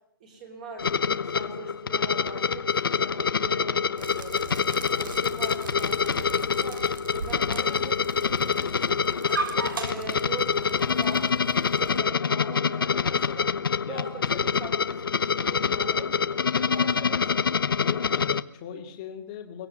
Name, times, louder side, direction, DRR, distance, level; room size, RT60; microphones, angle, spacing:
voice 1, 0.2-4.5 4.9-9.0 9.5-13.5 13.9-17.5, right 3 dB, 20° right, 3 dB, 4.1 m, -42 dB
sound 1, 0.8-18.4, left 6 dB, 65° left, 1.1 m, -26 dB
sound 2, 4.0-12.0, right 4 dB, 60° right, 4.2 m, -38 dB
voice 2, 13.8-14.5 17.8-19.7, left 8 dB, 15° left, 3 dB, 2.3 m, -39 dB
23.5 x 18.5 x 9.5 m, 0.74 s
hypercardioid pair, 180°, 13 cm